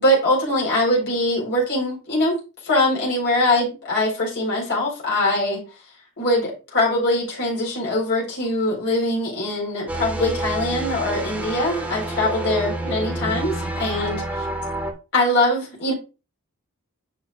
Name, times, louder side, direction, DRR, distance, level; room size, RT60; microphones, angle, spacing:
voice 1, 0.0-2.4 2.6-5.6 6.2-14.2 15.1-15.9, left 1 dB, 55° left, 3.6 m, -22 dB
sound 1, 9.9-14.9, right 1 dB, 10° right, 1.3 m, -28 dB
9.0 x 6.1 x 2.3 m
head